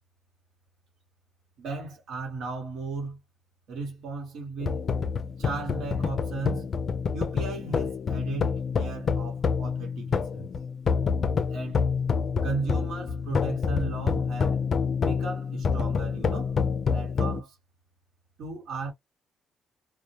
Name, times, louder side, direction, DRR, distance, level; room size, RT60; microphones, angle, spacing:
voice 1, 1.6-3.2 3.7-4.8 5.4-6.7 7.1-10.5 11.5-11.8 12.4-14.6 15.0-16.6 16.9-17.6 18.4-18.9, right 3 dB, 75° right, 1.1 m, -35 dB
sound 1, 4.6-17.4, left 5 dB, 50° left, 0.4 m, -27 dB
2.2 x 2.1 x 2.8 m
cardioid pair, 90°, 0 cm